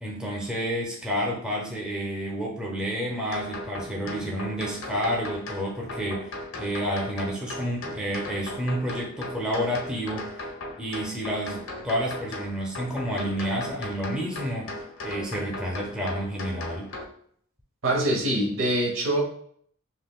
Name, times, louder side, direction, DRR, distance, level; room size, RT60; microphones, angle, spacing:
voice 1, 0.0-6.3 6.5-10.3 10.8-14.7 15.0-16.9, equal, 5° right, -3 dB, 0.6 m, -30 dB
sound 1, 3.3-17.0, left 1 dB, 85° left, 0.7 m, -37 dB
voice 2, 17.8-19.2, right 1 dB, 75° right, -1 dB, 1.0 m, -24 dB
5.5 x 2.2 x 2.3 m, 0.62 s
head